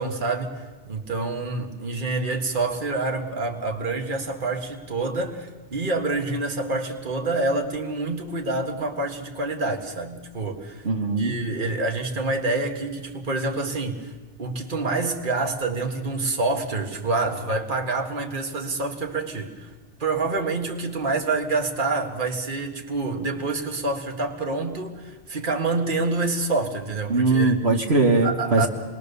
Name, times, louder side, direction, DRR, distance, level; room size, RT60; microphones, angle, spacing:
voice 1, 0.0-10.9 11.2-14.1 14.4-19.7 20.0-27.6 28.2-28.7, right 3 dB, 45° right, 3 dB, 2.0 m, -27 dB
voice 2, 10.8-11.4 27.1-28.7, right 3 dB, 65° right, 1 dB, 1.9 m, -20 dB
27.0 x 21.0 x 6.9 m, 1.3 s
omnidirectional pair, 1.2 m